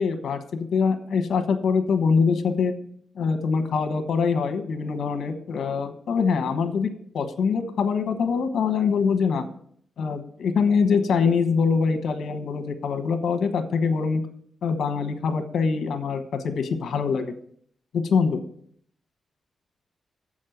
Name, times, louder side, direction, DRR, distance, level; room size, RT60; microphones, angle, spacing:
voice 1, 0.0-2.7 3.1-6.9 7.1-9.4 10.0-14.2 14.6-17.3 17.9-18.4, left 5 dB, 80° left, 8 dB, 1.2 m, -24 dB
7.5 x 6.4 x 7.8 m, 0.63 s
wide cardioid pair, 135°, 0 cm